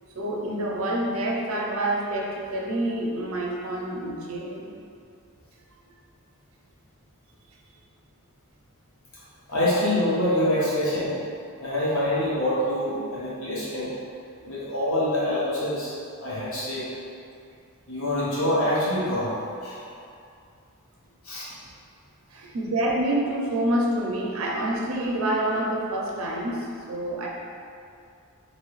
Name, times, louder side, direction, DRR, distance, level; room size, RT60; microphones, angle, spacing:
voice 1, 0.1-4.7 22.3-27.3, right 1 dB, 70° right, -2 dB, 0.5 m, -27 dB
voice 2, 9.5-11.2 11.6-13.9 14.4-15.9 16.2-16.9 17.9-19.3 19.6-19.8 21.2-21.4, left 1 dB, 70° left, -8 dB, 1.0 m, -25 dB
2.9 x 2.7 x 3.0 m, 2.4 s
head